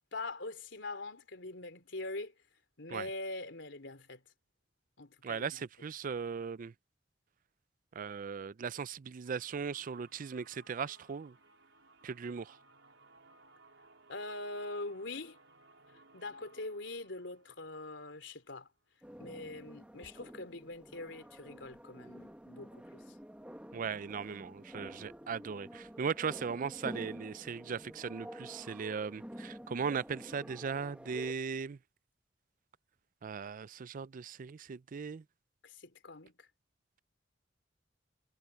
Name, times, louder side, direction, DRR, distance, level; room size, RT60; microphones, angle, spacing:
voice 1, 0.1-2.3 2.8-4.2 5.0-5.6 14.1-15.4 16.1-18.7 19.2-23.2 35.6-36.5, left 2 dB, 75° left, 3.6 m, -43 dB
voice 2, 5.2-6.7 7.9-11.4 12.0-12.6 23.7-31.8 33.2-35.2, right 6 dB, 45° right, 0.4 m, -38 dB
sound 1, 9.2-18.9, right 2 dB, 80° right, 4.5 m, -63 dB
sound 2, 19.0-31.3, equal, 5° right, 1.6 m, -49 dB
head